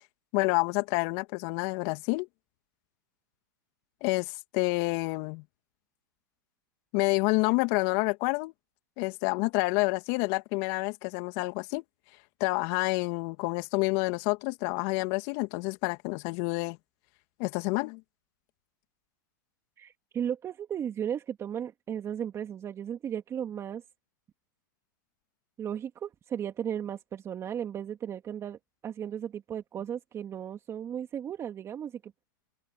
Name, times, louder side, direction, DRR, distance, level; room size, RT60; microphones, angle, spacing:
voice 1, 0.3-2.3 4.0-5.4 6.9-8.5 9.0-11.8 12.4-16.8 17.4-18.0, left 27 dB, 50° left, 2.3 m, -28 dB
voice 2, 19.8-23.8 25.6-28.6 28.8-32.1, right 9 dB, 25° right, 2.2 m, -35 dB
hypercardioid pair, 115°, 11 cm